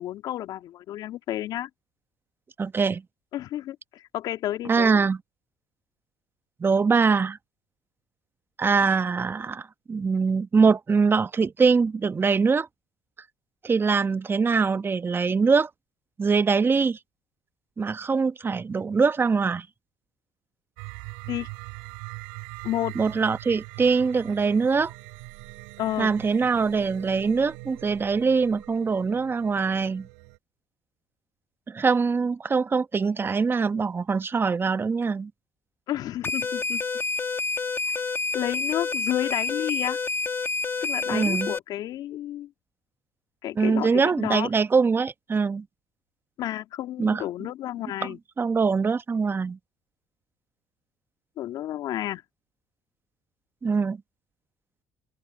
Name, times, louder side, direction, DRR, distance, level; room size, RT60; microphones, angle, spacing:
voice 1, 0.0-1.7 3.3-5.1 21.3-21.5 22.6-23.0 25.8-26.1 35.9-36.8 37.9-38.0 38.3-40.0 40.8-42.5 43.4-44.5 46.4-48.2 51.4-52.2, left 13 dB, 65° left, 2.4 m, -31 dB
voice 2, 2.6-3.0 4.7-5.2 6.6-7.4 8.6-12.7 13.6-15.7 16.2-17.0 17.8-19.7 22.9-24.9 26.0-30.1 31.7-35.3 41.1-41.5 43.6-45.6 47.0-47.2 48.4-49.6 53.6-54.0, right 5 dB, 30° right, 1.2 m, -23 dB
sound 1, 20.8-30.4, right 35 dB, 80° right, 3.2 m, -42 dB
sound 2, 36.2-41.6, left 4 dB, 30° left, 1.8 m, -28 dB
open air
hypercardioid pair, 65°, 8 cm